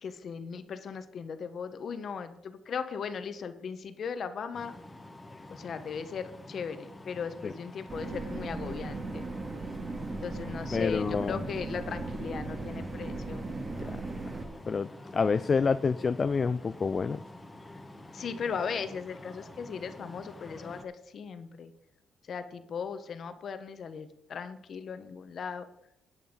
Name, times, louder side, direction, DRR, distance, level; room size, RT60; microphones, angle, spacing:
voice 1, 0.0-4.7 5.5-9.2 10.2-13.5 18.1-21.7 22.3-25.7, left 6 dB, 55° left, 10 dB, 1.2 m, -37 dB
sound 1, 4.5-20.8, left 1 dB, 15° left, 1.4 m, -48 dB
sound 2, 7.9-14.5, right 3 dB, 35° right, 2.2 m, -37 dB
voice 2, 10.7-11.4 13.8-14.0 14.7-17.2, left 5 dB, 35° left, 12 dB, 0.4 m, -28 dB
10.5 x 8.6 x 5.3 m, 0.79 s
cardioid pair, 90°, 0 cm